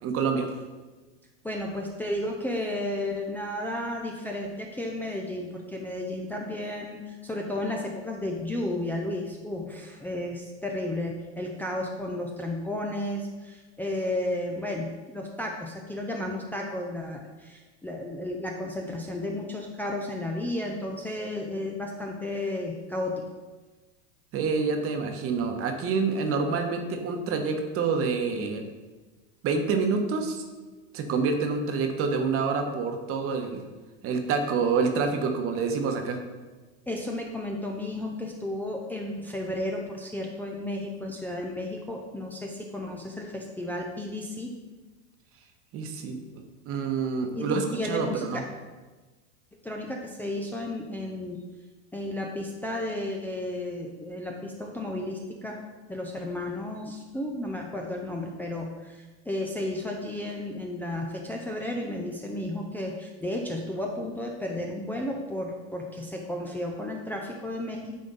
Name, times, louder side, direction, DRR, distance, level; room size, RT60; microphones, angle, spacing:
voice 1, 0.0-0.5 24.3-28.6 29.4-30.4 30.9-33.6 34.0-36.2 45.7-48.4, right 4 dB, 40° right, 4 dB, 1.1 m, -27 dB
voice 2, 1.4-23.2 36.9-44.5 47.3-48.4 49.6-51.4 51.9-55.6 55.9-68.0, left 1 dB, 5° left, -1 dB, 0.6 m, -33 dB
9.3 x 3.6 x 4.0 m, 1.3 s
hypercardioid pair, 105°, 35 cm